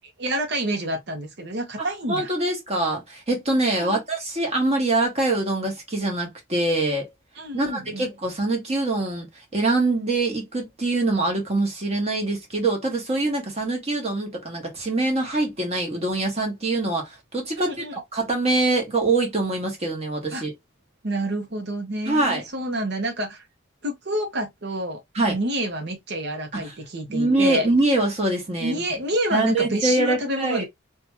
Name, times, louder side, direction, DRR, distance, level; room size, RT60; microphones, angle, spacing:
voice 1, 0.2-2.3 3.7-4.0 7.4-8.1 17.6-17.9 20.3-20.4 21.0-23.4 23.8-25.0 25.3-27.7 28.6-30.6, right 1 dB, 55° right, 0.8 m, -28 dB
voice 2, 1.8-7.1 7.5-9.3 9.5-20.5 22.1-22.4 25.1-25.4 26.5-26.8 27.1-28.8 29.3-30.6, right 2 dB, 30° right, 1.0 m, -24 dB
2.7 x 2.3 x 3.0 m
head